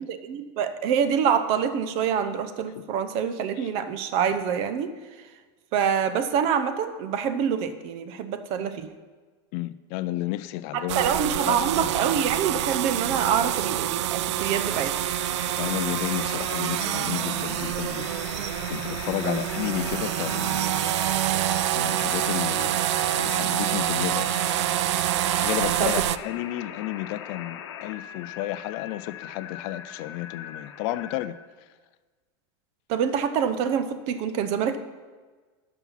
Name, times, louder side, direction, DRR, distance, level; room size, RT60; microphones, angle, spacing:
voice 1, 0.1-4.9 5.7-8.9 10.7-15.0 19.2-19.4 25.8-26.0 32.9-34.8, right 7 dB, 45° right, 11 dB, 0.8 m, -26 dB
voice 2, 9.5-11.1 11.5-11.9 15.6-18.1 18.7-20.9 21.2-22.8 23.1-24.4 25.4-31.4, left 15 dB, 45° left, 14 dB, 0.4 m, -32 dB
sound 1, 10.9-26.2, right 14 dB, 85° right, 0.4 m, -27 dB
sound 2, 14.4-31.3, left 9 dB, 80° left, 0.9 m, -40 dB
11.5 x 5.9 x 5.6 m, 1.4 s
supercardioid pair, 155°, 14 cm